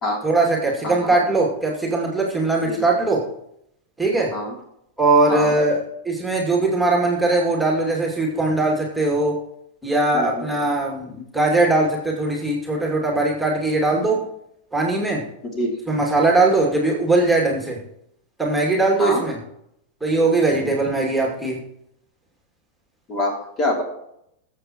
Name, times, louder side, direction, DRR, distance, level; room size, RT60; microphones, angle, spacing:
voice 1, 0.2-3.2 4.0-4.3 5.0-9.4 9.8-14.2 14.7-15.2 15.9-17.8 18.4-19.4 20.0-21.6, right 2 dB, ahead, -2 dB, 2.5 m, -20 dB
voice 2, 0.8-1.2 2.7-2.8 4.3-4.6 5.3-5.5 10.1-10.4 15.5-15.8 19.0-19.2 23.1-23.8, left 1 dB, 30° left, 1 dB, 3.0 m, -25 dB
21.5 x 7.4 x 3.0 m, 0.76 s
figure-of-eight pair, 90°, 0 cm